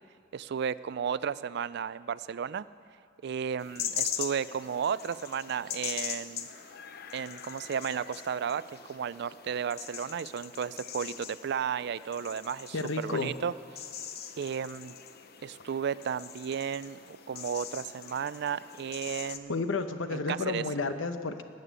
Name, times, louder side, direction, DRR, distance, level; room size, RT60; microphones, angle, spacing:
voice 1, 0.3-2.7 3.2-6.5 7.1-13.5 14.4-14.9 15.4-19.6 20.1-20.6, right 7 dB, 60° right, 17 dB, 0.4 m, -34 dB
sound 1, 3.6-19.4, left 9 dB, 55° left, 0.7 m, -41 dB
voice 2, 12.7-13.3 19.5-21.4, left 3 dB, 85° left, 9 dB, 0.9 m, -31 dB
19.0 x 6.7 x 8.9 m, 2.2 s
head